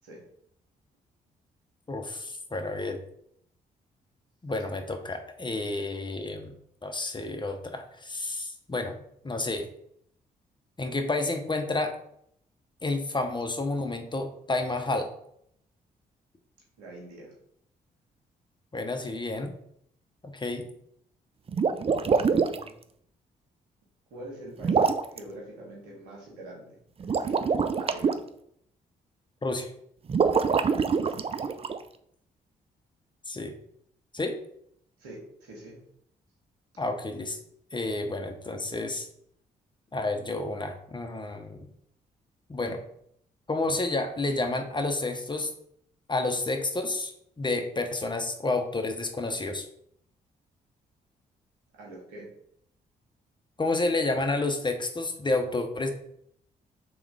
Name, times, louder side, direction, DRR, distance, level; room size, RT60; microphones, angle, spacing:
voice 1, 1.9-3.0 4.4-6.5 6.8-8.9 9.2-9.7 10.8-11.9 12.8-15.1 18.7-19.5 20.2-20.7 29.4-29.7 33.3-33.5 34.1-34.4 36.8-37.4 37.7-39.1 39.9-41.7 42.5-42.8 43.5-45.5 46.1-47.1 47.4-49.7 53.6-55.9, left 2 dB, 25° left, 5 dB, 0.8 m, -30 dB
voice 2, 16.8-17.3 22.0-22.7 24.1-28.1 30.9-31.3 35.0-35.8 51.8-52.3, right 1 dB, 85° right, -3 dB, 1.3 m, -45 dB
sound 1, 21.5-22.7 24.6-25.2 27.0-28.1 30.1-31.8, right 5 dB, 30° right, 0.4 m, -24 dB
3.6 x 3.0 x 4.8 m, 0.70 s
hypercardioid pair, 45°, 20 cm